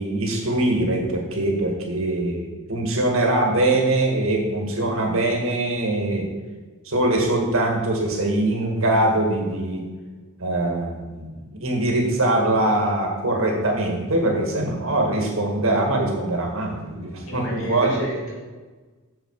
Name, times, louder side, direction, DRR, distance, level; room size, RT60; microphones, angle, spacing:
voice 1, 0.0-6.3 6.9-9.8 10.4-18.1, right 1 dB, 65° right, 1 dB, 1.9 m, -22 dB
voice 2, 17.2-18.3, equal, 65° left, -3 dB, 2.7 m, -33 dB
7.4 x 7.4 x 4.8 m, 1.3 s
head